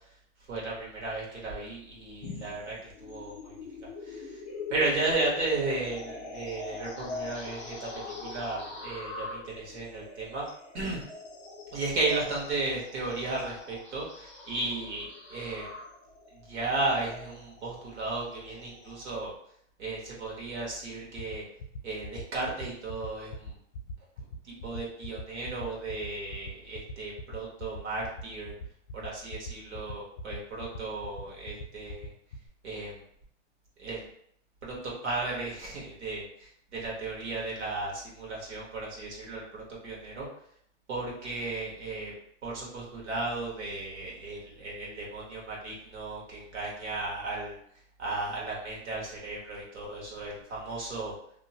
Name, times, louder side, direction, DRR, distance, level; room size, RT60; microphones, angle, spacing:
voice 1, 0.5-3.5 3.8-4.3 4.7-10.4 10.7-11.0 11.7-15.7 16.5-19.3 19.8-21.4 21.8-23.5 24.4-28.5 28.9-32.1 32.6-33.0 33.8-34.1 34.6-40.3 40.9-42.1 42.4-47.6 48.0-51.1, right 2 dB, 65° right, -4 dB, 1.3 m, -34 dB
sound 1, 2.2-19.1, left 3 dB, 25° left, 0.5 m, -43 dB
sound 2, 21.2-32.5, left 2 dB, 70° left, 0.6 m, -40 dB
2.8 x 2.1 x 2.8 m, 0.69 s
hypercardioid pair, 165°, 37 cm